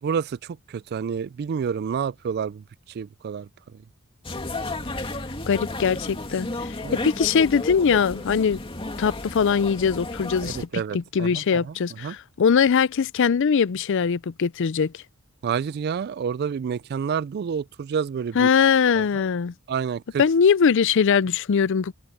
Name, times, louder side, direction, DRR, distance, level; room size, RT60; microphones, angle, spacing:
voice 1, 0.0-2.6 2.9-3.5 6.8-7.0 10.4-12.2 15.4-18.5 19.0-19.2 19.7-20.2, right 7 dB, 45° right, 0.3 m, -29 dB
sound 1, 4.2-10.7, left 2 dB, 25° left, 2.5 m, -33 dB
voice 2, 5.5-6.7 7.0-8.6 9.0-14.9 18.4-19.5 20.2-21.9, left 6 dB, 60° left, 0.4 m, -21 dB
open air
head